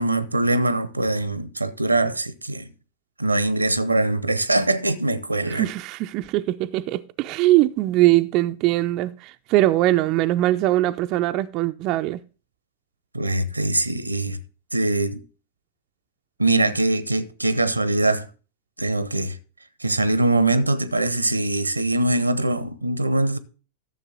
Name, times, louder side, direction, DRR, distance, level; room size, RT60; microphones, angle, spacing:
voice 1, 0.0-2.7 3.2-5.7 13.1-14.4 14.7-15.2 16.4-18.3 18.8-19.4 19.8-23.4, right 2 dB, 85° right, 0.7 m, -22 dB
voice 2, 5.5-12.2, right 16 dB, 40° right, 0.4 m, -21 dB
13.0 x 6.7 x 3.7 m
figure-of-eight pair, 90°, 0 cm